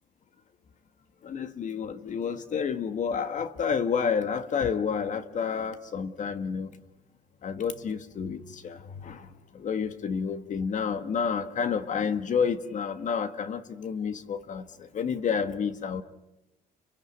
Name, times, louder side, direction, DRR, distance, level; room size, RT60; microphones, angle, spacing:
voice 1, 1.2-6.7 7.4-8.8 9.0-9.2 9.6-14.6 14.9-16.0, left 6 dB, 45° left, 10 dB, 1.6 m, -29 dB
30.0 x 17.5 x 9.5 m, 0.94 s
cardioid pair, 110°, 17 cm